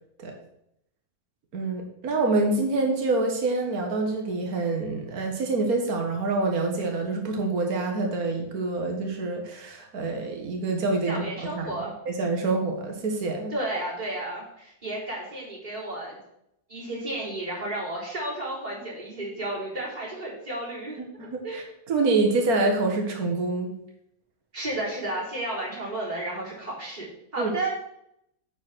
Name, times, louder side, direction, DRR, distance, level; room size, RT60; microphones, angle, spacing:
voice 1, 1.5-11.2 11.5-11.7 12.1-13.5 21.2-23.7 27.4-27.5, right 3 dB, 70° right, 2 dB, 1.9 m, -26 dB
voice 2, 11.1-11.9 13.5-16.2 16.7-21.0 21.4-21.7 24.5-27.1 27.3-27.7, right 1 dB, 25° right, -8 dB, 4.0 m, -32 dB
9.7 x 5.6 x 6.1 m, 0.78 s
omnidirectional pair, 1.6 m